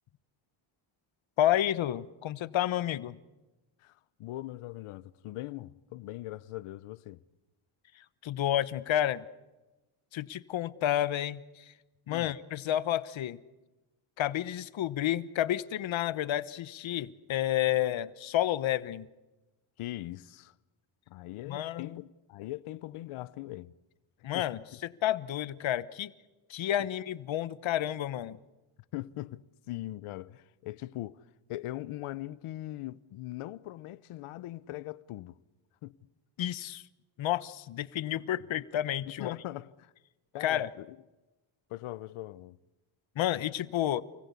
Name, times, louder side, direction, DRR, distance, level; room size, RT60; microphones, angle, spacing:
voice 1, 1.4-3.2 8.2-9.2 10.1-11.7 12.1-13.4 14.2-19.1 21.5-22.0 24.2-24.6 25.0-26.1 26.5-28.4 36.4-36.8 37.2-39.3 40.4-40.7 43.2-44.0, left 12 dB, 65° left, 1.2 m, -30 dB
voice 2, 3.8-7.2 12.1-12.3 19.8-20.5 21.1-23.7 24.3-24.8 28.9-35.4 35.8-36.0 39.1-39.9 40.3-41.0 41.7-42.6, left 16 dB, 90° left, 1.0 m, -41 dB
29.0 x 20.0 x 8.4 m
cardioid pair, 105°, 49 cm